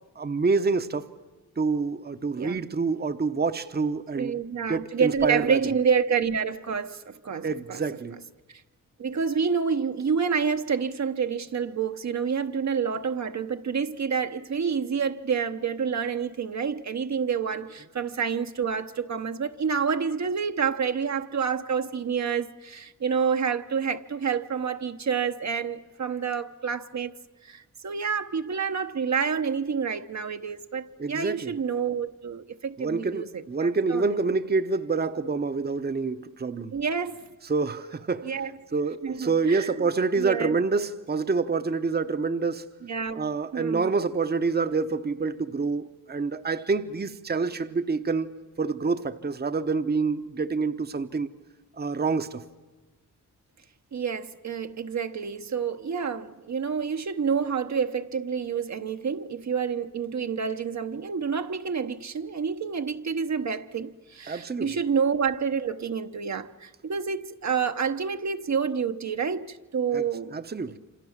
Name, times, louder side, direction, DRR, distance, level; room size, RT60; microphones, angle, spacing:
voice 1, 0.2-1.1 1.6-4.4 4.7-5.6 7.4-8.2 31.0-31.6 32.8-36.8 37.4-38.3 38.7-42.7 43.2-51.3 51.8-52.4 64.3-64.7 69.9-70.1 70.3-70.8, right 4 dB, 30° right, 0.9 m, -27 dB
voice 2, 4.1-7.8 8.5-8.6 9.0-27.1 27.4-34.2 36.7-37.3 38.2-38.5 39.0-39.8 40.1-40.5 42.8-43.3 43.5-43.9 53.9-70.4, right 6 dB, 60° right, 1.0 m, -28 dB
27.5 x 27.0 x 7.3 m
wide cardioid pair, 100°, 32 cm